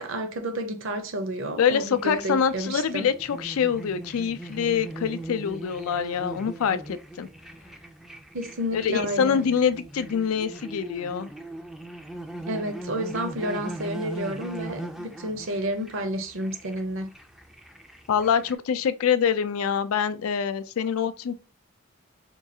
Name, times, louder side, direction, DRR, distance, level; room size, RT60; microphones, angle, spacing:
voice 1, 0.0-3.1 8.3-9.5 12.5-17.1, right 1 dB, 60° right, 0.7 m, -30 dB
voice 2, 1.6-7.3 8.7-11.3 18.1-21.3, left 7 dB, 75° left, 0.4 m, -25 dB
sound 1, 1.9-18.5, right 1 dB, ahead, 0.3 m, -40 dB
4.5 x 2.3 x 2.7 m
head